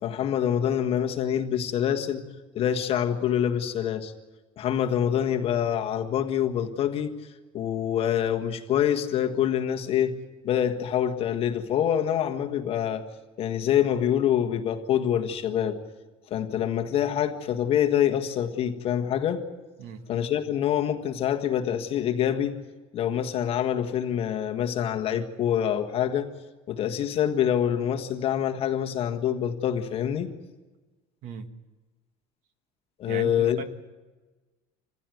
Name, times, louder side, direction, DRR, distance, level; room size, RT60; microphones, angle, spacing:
voice 1, 0.0-2.3 2.5-4.1 4.6-7.2 7.5-10.2 10.4-13.0 13.4-15.8 16.3-19.4 20.1-22.6 22.9-26.3 26.7-30.3 33.0-33.6, left 9 dB, 40° left, 4 dB, 1.6 m, -26 dB
voice 2, 33.1-33.6, right 5 dB, 55° right, 9 dB, 1.5 m, -37 dB
26.0 x 15.5 x 9.3 m, 1.2 s
cardioid pair, 165°, 16 cm